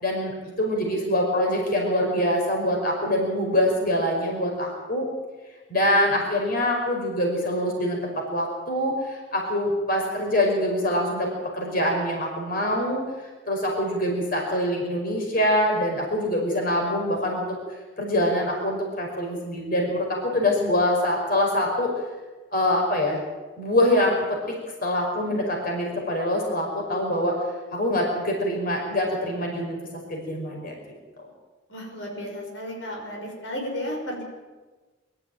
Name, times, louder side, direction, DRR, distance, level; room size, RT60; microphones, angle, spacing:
voice 1, 0.0-5.1 5.7-13.0 13.5-17.4 18.0-21.9 22.5-23.2 23.6-27.4 27.7-29.8 30.1-30.7, left 1 dB, 50° left, 0 dB, 5.4 m, -24 dB
voice 2, 31.7-34.2, equal, 90° left, 0 dB, 5.9 m, -33 dB
23.5 x 13.5 x 8.9 m, 1.3 s
head